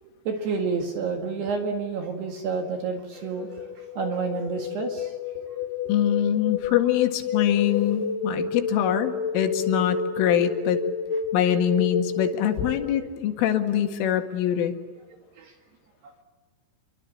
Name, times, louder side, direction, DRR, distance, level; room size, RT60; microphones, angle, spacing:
voice 1, 0.0-5.2 15.4-15.5, right 5 dB, 60° right, 4 dB, 3.5 m, -30 dB
sound 1, 3.2-13.1, left 5 dB, 60° left, 3.5 m, -30 dB
voice 2, 5.9-10.8 11.3-14.7, left 10 dB, 75° left, 6 dB, 4.4 m, -24 dB
28.5 x 24.0 x 8.5 m, 1.4 s
omnidirectional pair, 5.9 m